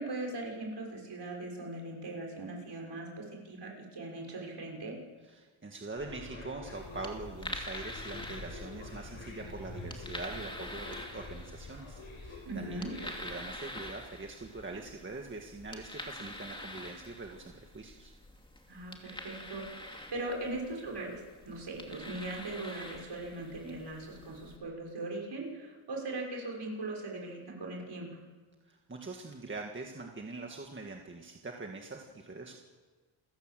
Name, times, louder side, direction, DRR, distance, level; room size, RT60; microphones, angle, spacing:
voice 1, 0.0-5.0 12.5-12.9 18.7-28.1, right 2 dB, 55° right, 0 dB, 6.2 m, -40 dB
voice 2, 5.3-18.1 28.7-32.6, right 3 dB, 25° right, 2 dB, 1.7 m, -43 dB
sound 1, 5.9-13.4, left 3 dB, 75° left, 6.5 m, -46 dB
sound 2, 6.7-24.6, left 1 dB, 10° left, 2.6 m, -46 dB
29.0 x 15.5 x 7.7 m, 1.4 s
wide cardioid pair, 160°, 49 cm